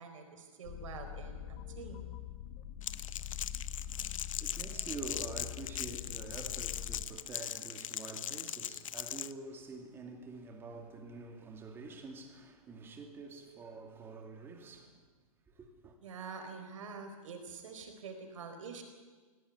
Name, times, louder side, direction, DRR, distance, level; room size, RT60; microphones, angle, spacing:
voice 1, 0.0-2.1 16.0-18.8, right 5 dB, 60° right, 4.5 m, -46 dB
sound 1, 0.6-7.1, left 10 dB, 35° left, 1.3 m, -44 dB
Crackle, 2.8-9.3, left 10 dB, 65° left, 0.8 m, -40 dB
voice 2, 3.5-15.0 15.5-16.0, right 3 dB, 10° right, 2.4 m, -47 dB
17.0 x 17.0 x 9.7 m
hypercardioid pair, 155°, 18 cm